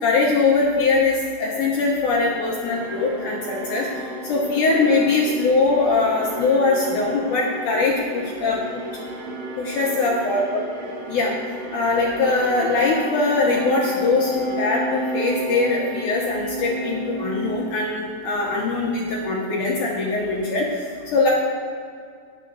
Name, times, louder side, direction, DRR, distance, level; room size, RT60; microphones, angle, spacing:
voice 1, 0.0-3.9 4.3-8.6 9.6-10.6 11.1-11.3 11.7-20.7 21.1-21.3, left 3 dB, 70° left, -4 dB, 2.1 m, -21 dB
sound 1, 2.1-18.4, right 1 dB, 65° right, 3.1 m, -32 dB
20.5 x 7.0 x 2.5 m, 2.2 s
omnidirectional pair, 4.7 m